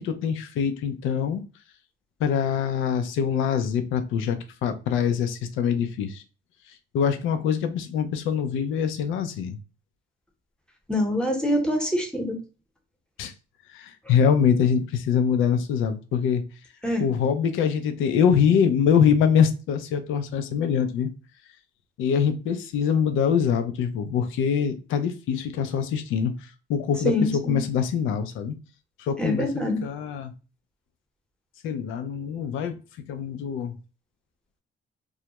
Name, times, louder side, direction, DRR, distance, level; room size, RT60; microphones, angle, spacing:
voice 1, 0.0-1.4 2.2-6.2 6.7-9.6 13.2-13.3 13.7-16.4 17.0-21.1 22.0-28.6 29.0-30.3 31.6-32.8 33.1-33.8, left 7 dB, 85° left, 9 dB, 0.4 m, -24 dB
voice 2, 10.9-12.4 16.8-17.1 27.0-27.6 29.2-29.8, left 1 dB, 5° left, 2 dB, 0.8 m, -25 dB
2.3 x 2.0 x 2.8 m, 0.33 s
cardioid pair, 90°, 20 cm